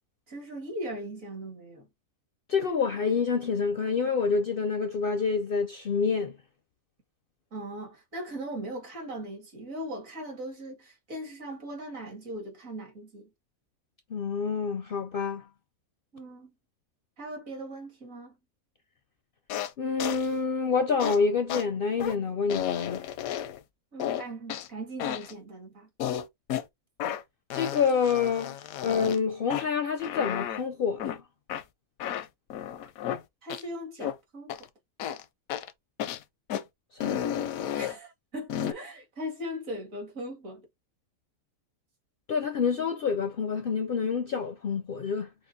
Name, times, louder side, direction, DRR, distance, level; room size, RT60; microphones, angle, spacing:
voice 1, 0.3-1.9 7.5-13.3 16.1-16.5 17.2-18.4 23.9-25.9 33.4-34.6 37.7-40.7, right 1 dB, 70° right, 2.4 m, -39 dB
voice 2, 2.5-6.3 14.1-15.5 19.8-23.0 27.5-31.2 36.9-37.3 42.3-45.3, left 5 dB, 60° left, 0.6 m, -27 dB
sound 1, 19.5-19.7 20.0-20.3 21.0-21.2 21.5-21.6 22.0-22.2 22.5-23.6 24.0-24.7 25.0-25.3 26.0-26.6 27.0-27.2 27.5-29.2 29.5-29.7 30.0-30.6 31.0-31.2 31.5-31.6 32.0-33.2 33.5-33.6 34.0-34.2 34.5-34.6 35.0-35.2 35.5-35.7 36.0-36.2 36.5-36.6 37.0-38.0 38.5-38.7, left 10 dB, 80° left, 1.0 m, -32 dB
6.2 x 2.5 x 2.6 m
omnidirectional pair, 1.5 m